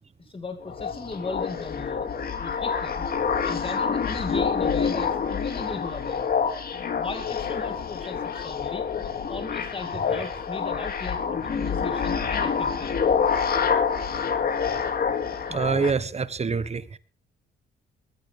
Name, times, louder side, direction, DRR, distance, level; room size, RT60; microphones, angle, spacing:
voice 1, 0.2-2.0 2.4-3.1 3.4-6.3 7.0-8.9 9.3-13.0, left 3 dB, 25° left, 2.5 m, -37 dB
sound 1, 0.6-15.9, left 6 dB, 50° left, 2.4 m, -27 dB
voice 2, 15.5-16.8, right 5 dB, 35° right, 1.3 m, -25 dB
21.0 x 14.5 x 3.4 m
cardioid pair, 90°, 20 cm